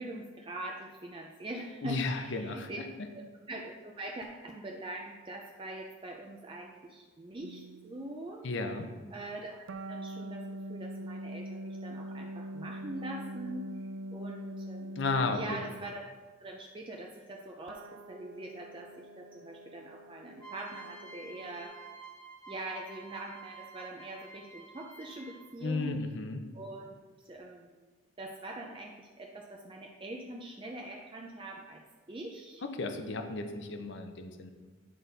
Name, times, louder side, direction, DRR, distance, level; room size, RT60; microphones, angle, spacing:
voice 1, 0.0-2.8 3.1-8.5 9.1-13.8 14.1-15.0 15.3-16.0 16.4-17.8 18.1-21.7 22.5-26.0 26.5-27.8 28.2-31.8 32.1-32.6 33.0-33.1, right 1 dB, 25° right, 0 dB, 0.5 m, -43 dB
voice 2, 1.8-2.9 8.4-8.9 15.0-15.6 25.6-26.4 32.6-34.5, left 3 dB, 60° left, 6 dB, 0.7 m, -34 dB
sound 1, 7.4-8.0 9.7-16.0 17.7-21.7, right 1 dB, 80° right, 0.4 m, -43 dB
sound 2, 20.4-25.6, right 4 dB, 20° left, 1.0 m, -50 dB
9.8 x 4.0 x 4.0 m, 1.4 s
head